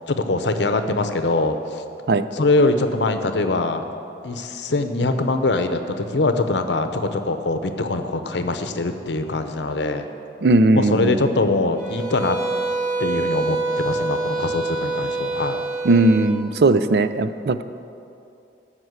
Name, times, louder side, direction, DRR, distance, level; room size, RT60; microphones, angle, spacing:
voice 1, 0.1-1.6 2.3-3.8 4.2-10.1 10.7-12.4 13.0-15.6, left 2 dB, 85° left, 8 dB, 0.8 m, -22 dB
voice 2, 10.4-11.2 15.8-17.6, right 2 dB, 65° right, 12 dB, 0.5 m, -18 dB
sound 1, 11.8-16.4, right 3 dB, 45° right, 1.9 m, -26 dB
12.5 x 6.1 x 8.0 m, 2.6 s
head